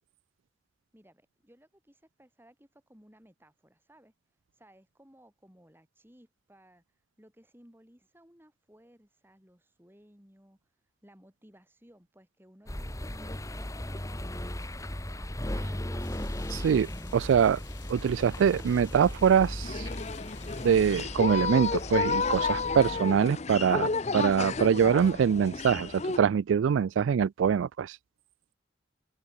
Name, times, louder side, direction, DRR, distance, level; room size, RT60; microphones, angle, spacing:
voice 1, 0.9-4.1 4.5-6.8 7.2-10.6 11.0-15.4 15.6-17.2, equal, 10° right, 4.5 m, -59 dB
sound 1, 12.7-23.0, left 1 dB, 15° left, 1.8 m, -37 dB
sound 2, 16.0-21.0, left 12 dB, 70° left, 4.9 m, -56 dB
voice 2, 16.5-16.9 17.1-17.6 17.9-19.9 20.6-28.0, right 7 dB, 90° right, 0.3 m, -24 dB
sound 3, 19.6-26.2, left 4 dB, 35° left, 0.7 m, -31 dB
open air
head